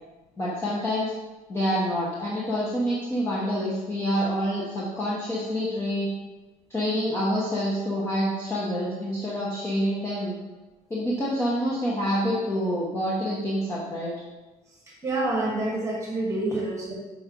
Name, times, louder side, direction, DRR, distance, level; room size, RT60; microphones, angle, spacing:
voice 1, 0.4-1.1 1.5-6.1 6.7-10.4 10.9-14.1, equal, 15° left, -7 dB, 1.1 m, -27 dB
voice 2, 15.0-16.9, right 2 dB, 20° right, -3 dB, 1.5 m, -27 dB
6.1 x 4.9 x 5.2 m, 1.2 s
cardioid pair, 175°, 15 cm